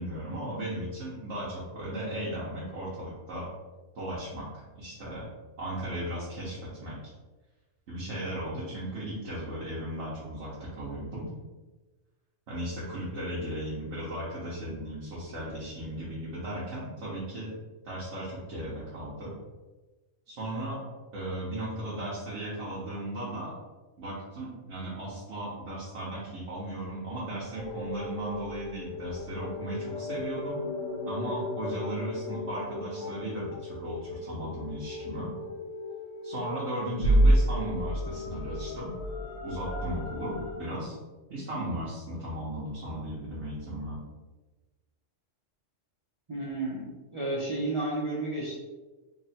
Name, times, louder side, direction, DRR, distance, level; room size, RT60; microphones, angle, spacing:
voice 1, 0.0-3.5 3.9-4.5 4.7-5.3 5.6-7.0 7.9-11.3 12.5-17.5 17.8-19.3 20.3-20.8 21.1-23.5 24.0-30.6 31.1-35.3 36.2-38.9 39.4-40.9 41.3-44.0, right 1 dB, 65° right, -9 dB, 1.2 m, -36 dB
sound 1, 27.5-40.6, equal, 60° left, 0.8 m, -31 dB
voice 2, 46.3-48.6, right 2 dB, 35° right, -6 dB, 0.5 m, -32 dB
3.8 x 2.1 x 4.1 m, 1.2 s
omnidirectional pair, 1.3 m